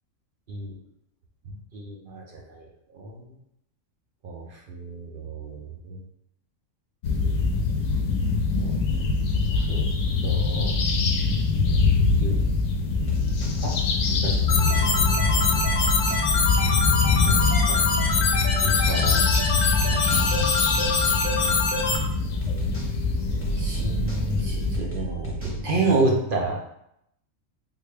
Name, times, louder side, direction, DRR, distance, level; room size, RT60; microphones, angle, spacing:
voice 1, 1.7-3.3 4.2-6.0 8.6-8.7 9.5-9.9 10.2-10.7 12.2-12.4 13.6-13.7 14.2-14.7 17.0-17.9 18.6-19.2 19.7-20.5 23.6-26.6, right 2 dB, 55° right, -1 dB, 0.6 m, -30 dB
sound 1, 7.0-24.8, left 4 dB, 75° left, 0.9 m, -24 dB
sound 2, 13.1-13.5 14.1-14.9 15.4-16.2 16.6-16.8 17.1-17.5 18.1-18.9 19.4-20.2 20.7-21.5 21.9-22.1 22.4-22.9 23.4-25.6, right 1 dB, 10° left, 0.9 m, -34 dB
sound 3, 14.5-22.0, left 4 dB, 55° left, 0.6 m, -24 dB
3.7 x 2.3 x 3.3 m, 0.76 s
omnidirectional pair, 1.4 m